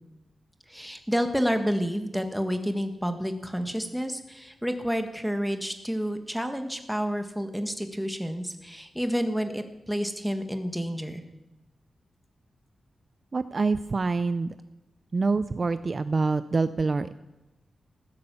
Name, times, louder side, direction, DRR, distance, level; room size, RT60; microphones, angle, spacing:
voice 1, 0.7-11.2, equal, ahead, 6 dB, 1.5 m, -29 dB
voice 2, 13.3-14.5 15.1-17.1, right 4 dB, 35° right, 12 dB, 0.5 m, -26 dB
15.5 x 12.0 x 6.9 m, 1.0 s
wide cardioid pair, 135°, 0 cm